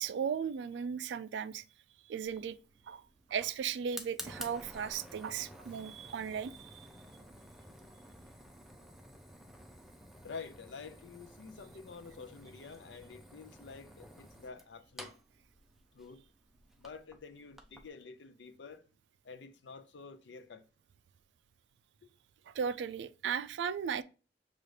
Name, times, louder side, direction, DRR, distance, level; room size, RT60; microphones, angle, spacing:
voice 1, 0.0-1.6 2.1-2.6 2.9-3.0 3.3-6.9 22.5-24.0, right 7 dB, 75° right, 0.3 m, -36 dB
Fire, 2.2-17.9, equal, ahead, 0.4 m, -52 dB
voice 2, 10.2-15.1 15.9-16.2 16.8-18.8 19.2-20.6, left 5 dB, 75° left, 0.5 m, -49 dB
6.3 x 2.4 x 3.2 m
head